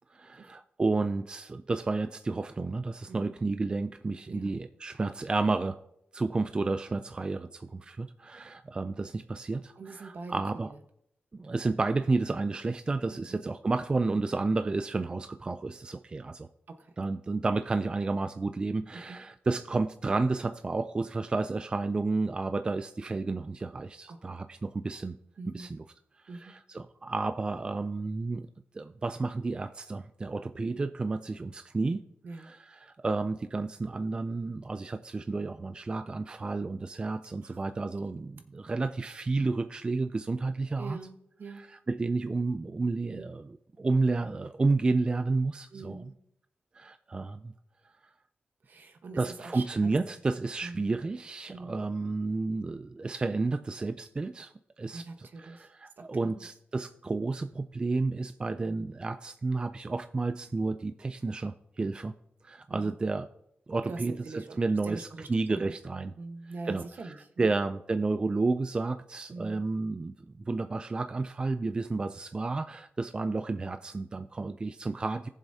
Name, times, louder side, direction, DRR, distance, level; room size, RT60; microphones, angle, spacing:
voice 1, 0.1-5.8 6.1-10.7 11.3-16.5 17.0-25.2 25.5-25.8 26.3-28.5 28.7-32.0 32.4-41.0 41.9-43.4 43.8-46.0 46.7-47.5 49.2-62.1 62.4-63.3 63.7-66.1 66.7-70.1 70.5-75.3, right 3 dB, 25° right, 10 dB, 0.3 m, -31 dB
voice 2, 3.1-3.4 4.3-4.5 9.7-10.8 13.1-13.4 16.7-17.0 18.9-19.2 24.1-24.4 25.4-25.7 26.3-26.5 32.2-32.5 37.4-37.6 40.8-41.7 43.1-43.2 45.7-46.2 48.6-49.9 50.6-50.9 51.5-51.9 54.9-55.7 56.0-56.5 62.7-62.9 63.9-65.7 66.2-67.5 69.3-69.7, right 3 dB, 60° right, 6 dB, 1.2 m, -44 dB
19.0 x 7.2 x 2.8 m, 0.77 s
wide cardioid pair, 140°, 4 cm